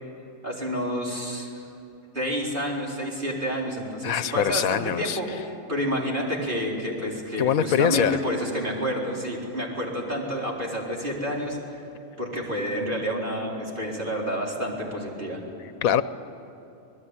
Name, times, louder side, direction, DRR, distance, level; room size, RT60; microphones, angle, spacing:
voice 1, 0.4-1.6 2.1-11.8 12.2-15.4, equal, 35° right, -3 dB, 4.5 m, -29 dB
voice 2, 4.0-5.2 7.4-8.2 15.6-16.0, left 9 dB, 90° left, 13 dB, 1.3 m, -23 dB
27.0 x 20.0 x 9.8 m, 2.8 s
omnidirectional pair, 1.4 m